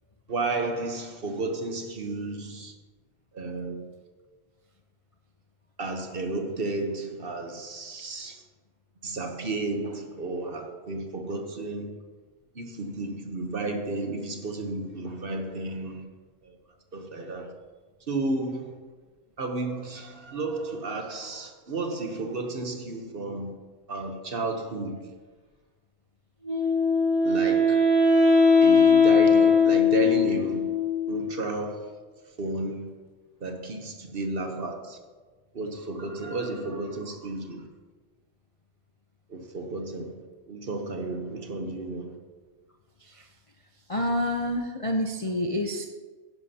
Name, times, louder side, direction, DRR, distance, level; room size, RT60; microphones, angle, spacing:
voice 1, 0.3-2.7 3.3-3.8 5.8-8.4 9.0-12.0 12.5-16.0 16.4-16.6 16.9-17.5 18.1-18.9 19.4-23.5 23.9-25.1 27.2-27.8 28.6-30.7 31.1-31.9 32.4-32.9 33.4-35.0 35.5-37.7 39.3-40.2 40.5-42.1, right 2 dB, 45° right, 1.0 m, -32 dB
Wind instrument woodwind instrument, 26.5-31.5, left 4 dB, 25° right, 2.8 m, -20 dB
voice 2, 43.9-45.8, left 1 dB, 40° left, 0.5 m, -28 dB
10.5 x 10.5 x 2.8 m
omnidirectional pair, 1.5 m